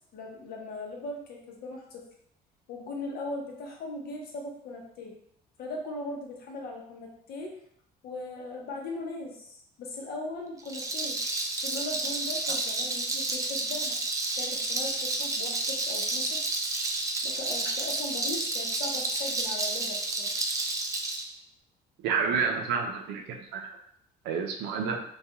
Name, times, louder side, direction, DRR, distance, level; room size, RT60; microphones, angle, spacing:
voice 1, 0.1-2.0 2.7-5.1 5.6-7.5 8.0-11.2 11.6-14.0 14.3-16.4 17.2-20.3, left 2 dB, 65° left, 0 dB, 0.7 m, -39 dB
Rattle, 10.6-21.2, right 2 dB, 20° right, 0.3 m, -30 dB
voice 2, 22.0-23.8 24.2-25.0, right 5 dB, 85° right, 3 dB, 0.4 m, -29 dB
2.3 x 2.2 x 2.8 m, 0.69 s
cardioid pair, 110°, 17 cm